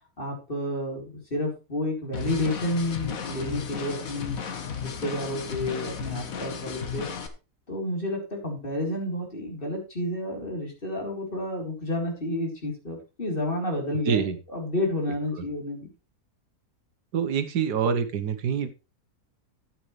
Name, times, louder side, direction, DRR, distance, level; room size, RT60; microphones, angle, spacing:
voice 1, 0.2-4.4 4.8-7.1 7.7-15.9, left 1 dB, 35° left, 0 dB, 3.9 m, -30 dB
sound 1, 2.1-7.3, left 7 dB, 60° left, 1.6 m, -34 dB
voice 2, 14.0-14.4 15.3-15.5 17.1-18.7, right 7 dB, 90° right, 10 dB, 1.7 m, -26 dB
12.5 x 8.9 x 3.2 m, 0.29 s
omnidirectional pair, 1.7 m